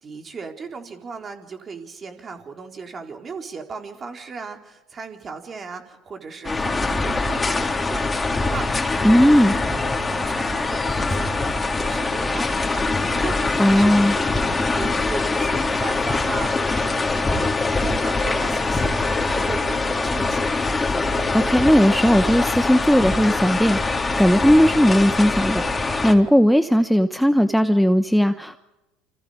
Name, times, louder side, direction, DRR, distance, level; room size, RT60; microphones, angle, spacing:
voice 1, 0.0-20.5, right 5 dB, 35° right, 3 dB, 4.1 m, -36 dB
sound 1, 6.4-26.1, left 3 dB, 20° left, 3.6 m, -23 dB
voice 2, 9.0-9.5 13.6-14.1 21.3-28.6, equal, ahead, 9 dB, 1.1 m, -17 dB
29.0 x 26.0 x 5.1 m, 0.98 s
hypercardioid pair, 70°, 0 cm